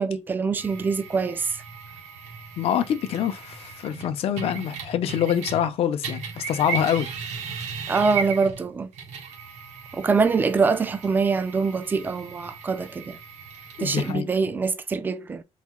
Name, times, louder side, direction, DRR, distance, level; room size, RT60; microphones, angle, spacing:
voice 1, 0.0-1.6 7.9-8.9 9.9-13.2 13.8-15.4, right 4 dB, 15° right, 0.4 m, -24 dB
sound 1, 0.6-5.7 6.0-14.1, right 6 dB, 80° right, 1.3 m, -37 dB
voice 2, 2.6-7.1 13.8-14.3, left 9 dB, 60° left, 0.6 m, -25 dB
4.1 x 2.7 x 3.6 m
cardioid pair, 165°, 11 cm